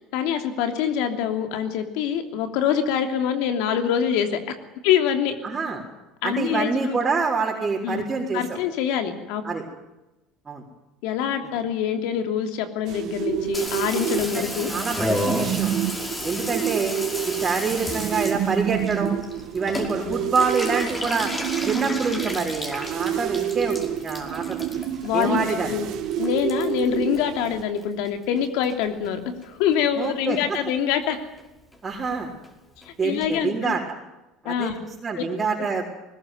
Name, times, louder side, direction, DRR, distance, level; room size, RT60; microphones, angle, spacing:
voice 1, 0.0-4.5 4.8-5.3 6.2-7.0 7.8-8.0 8.3-9.4 11.0-14.7 20.0-20.2 25.0-25.4 25.7-25.9 26.2-31.2 32.8-33.7 34.4-34.7 35.2-35.3 35.6-35.7, left 8 dB, 75° left, 6 dB, 3.0 m, -25 dB
voice 2, 5.4-5.8 6.2-8.6 9.4-9.6 10.5-10.6 14.3-15.7 16.2-17.0 17.3-19.1 19.5-21.3 21.6-24.7 25.1-25.7 30.0-30.6 31.8-32.3 33.0-33.8 34.4-35.9, right 4 dB, 30° right, -4 dB, 4.5 m, -26 dB
sound 1, 12.9-27.6, right 11 dB, 60° right, 1.6 m, -29 dB
Water tap faucet / Bathtub (filling or washing), 13.5-28.1 28.4-29.1 29.4-29.5 29.7-29.8 30.0-30.4 30.7-30.8 31.0-31.1 31.4-31.5 31.7-31.8 32.0-32.1 32.4-32.5 32.8-32.9 33.2-33.3, left 1 dB, 15° left, 5.4 m, -33 dB
20.5 x 20.0 x 9.5 m, 1.0 s
hypercardioid pair, 85°, 0 cm